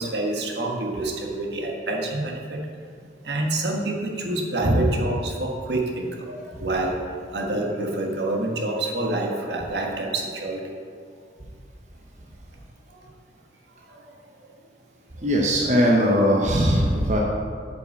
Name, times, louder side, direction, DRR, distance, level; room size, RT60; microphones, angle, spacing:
voice 1, 0.0-2.6 3.2-7.0 7.3-10.7 12.9-13.1 13.8-14.1 14.4-14.5, right 2 dB, 65° right, 0 dB, 1.5 m, -27 dB
voice 2, 15.2-17.2, equal, 40° right, -2 dB, 1.0 m, -20 dB
8.8 x 5.8 x 7.2 m, 2.1 s
head